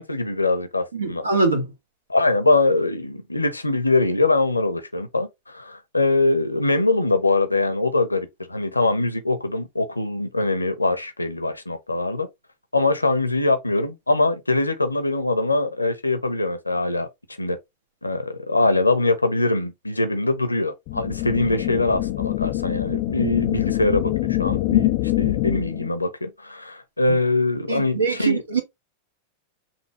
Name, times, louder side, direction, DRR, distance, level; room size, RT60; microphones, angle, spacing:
voice 1, 0.0-1.2 2.1-12.3 12.7-17.1 17.4-17.6 18.0-28.4, left 2 dB, 85° left, 0.7 m, -23 dB
voice 2, 0.9-1.7 27.7-28.6, right 4 dB, 70° right, 1.4 m, -23 dB
sound 1, 20.9-25.9, left 18 dB, 45° left, 0.4 m, -24 dB
5.8 x 2.6 x 3.1 m
figure-of-eight pair, 90°, 0 cm